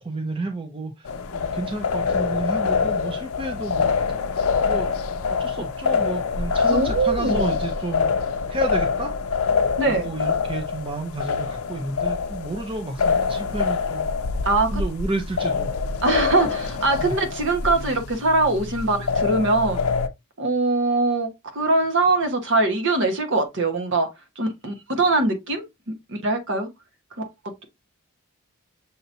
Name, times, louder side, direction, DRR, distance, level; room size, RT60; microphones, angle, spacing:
voice 1, 0.0-3.9 4.3-4.9 5.4-8.1 8.5-9.1 9.8-14.1 14.7-15.7 17.0-17.1, right 2 dB, 25° right, 0.5 m, -31 dB
sound 1, 1.0-20.1, left 5 dB, 70° left, 0.5 m, -25 dB
voice 2, 6.7-7.5 9.8-10.1 14.4-14.8 16.0-19.8 20.4-24.1 24.4-26.7 27.2-27.3, right 2 dB, 55° right, 1.1 m, -22 dB
6.6 x 2.9 x 2.6 m
head